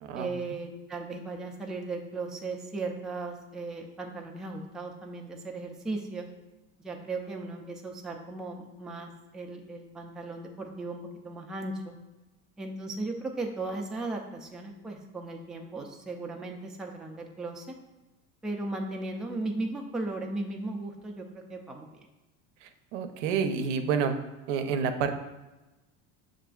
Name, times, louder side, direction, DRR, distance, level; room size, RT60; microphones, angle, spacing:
voice 1, 0.2-6.3 6.8-12.0 12.6-17.8 18.4-22.0, right 2 dB, ahead, 1 dB, 0.3 m, -36 dB
voice 2, 22.6-24.1 24.5-25.2, right 6 dB, 80° right, 7 dB, 0.6 m, -29 dB
6.5 x 2.5 x 2.3 m, 1.1 s
supercardioid pair, 100°, 36 cm